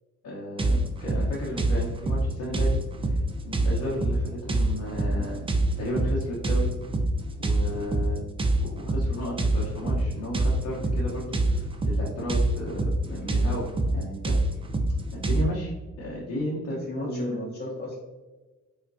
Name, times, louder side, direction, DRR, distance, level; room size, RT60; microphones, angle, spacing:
voice 1, 0.2-5.5 5.8-6.7 7.4-8.2 8.6-13.6 13.9-14.4 15.1-15.7 16.0-16.8 17.1-17.4, equal, 75° left, -5 dB, 1.0 m, -34 dB
sound 1, 0.6-15.4, right 1 dB, 20° right, 0.4 m, -26 dB
voice 2, 16.7-18.0, left 1 dB, 30° left, -5 dB, 0.8 m, -35 dB
5.0 x 2.2 x 2.6 m, 1.2 s
cardioid pair, 90°, 30 cm